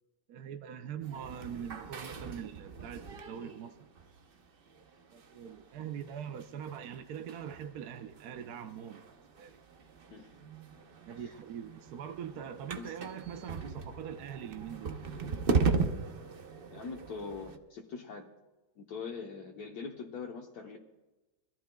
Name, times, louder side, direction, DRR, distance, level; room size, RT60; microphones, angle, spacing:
voice 1, 0.3-3.9 5.1-9.0 9.4-9.6 11.1-15.0, right 8 dB, 70° right, 1.1 m, -42 dB
sound 1, 1.0-17.6, right 4 dB, 50° right, 0.7 m, -38 dB
voice 2, 16.7-18.3 18.8-20.8, left 5 dB, 65° left, 1.4 m, -42 dB
24.0 x 14.5 x 2.3 m
omnidirectional pair, 1.9 m